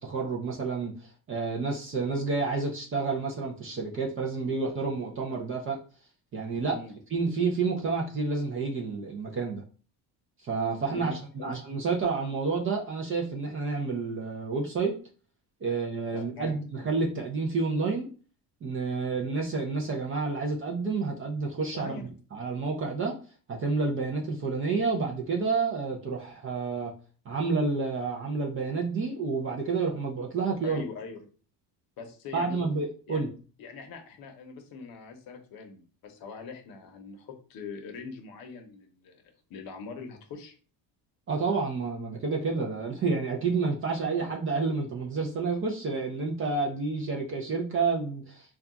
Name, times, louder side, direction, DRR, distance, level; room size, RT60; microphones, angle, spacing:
voice 1, 0.0-5.8 6.3-6.8 7.1-9.6 10.4-14.9 15.6-18.1 18.6-23.2 23.5-26.9 27.3-30.8 32.3-33.3 41.3-48.6, right 4 dB, 30° right, 0 dB, 0.4 m, -29 dB
voice 2, 6.7-7.0 10.9-11.5 15.7-15.8 16.1-16.5 21.7-22.1 30.6-31.2 32.0-32.6 33.1-33.2 33.6-39.2 39.5-40.6, left 4 dB, 55° left, 4 dB, 0.7 m, -42 dB
2.3 x 2.2 x 3.8 m, 0.39 s
cardioid pair, 155°, 42 cm